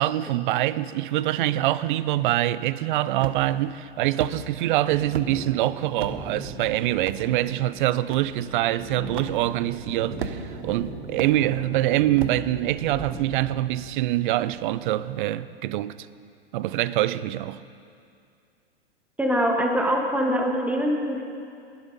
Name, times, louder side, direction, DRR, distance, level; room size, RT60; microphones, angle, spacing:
voice 1, 0.0-16.0 16.5-17.6, right 14 dB, 50° right, 0.5 m, -25 dB
sound 1, 3.2-3.6 4.2-4.4 5.1-5.3 6.0-6.2 7.0-7.2 8.1-8.2 9.1-9.3 10.2-10.6 11.2-11.3 12.2-12.4, right 8 dB, 75° right, 1.0 m, -32 dB
sound 2, 4.9-15.2, right 2 dB, 25° right, 3.0 m, -39 dB
voice 2, 19.2-21.2, equal, 5° right, 1.6 m, -23 dB
19.5 x 11.5 x 4.1 m
hypercardioid pair, 110°, 32 cm